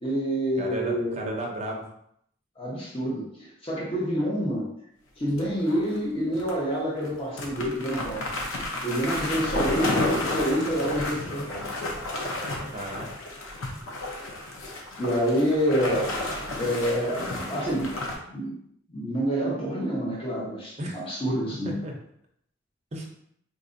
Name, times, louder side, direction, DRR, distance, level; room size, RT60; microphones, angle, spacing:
voice 1, 0.0-1.4 2.6-4.8 5.2-8.2 8.8-11.6 15.0-16.1 16.6-17.9 18.3-18.6 18.9-21.8, equal, 25° left, -5 dB, 0.8 m, -27 dB
voice 2, 0.6-1.9 12.7-13.1 20.8-21.0 21.6-21.9 22.9-23.0, right 1 dB, 35° right, 0 dB, 0.6 m, -33 dB
sound 1, 5.3-6.0 6.3-6.5 7.0-7.1 7.4-18.2, left 2 dB, 90° left, 0.7 m, -32 dB
4.1 x 2.5 x 2.6 m, 0.70 s
head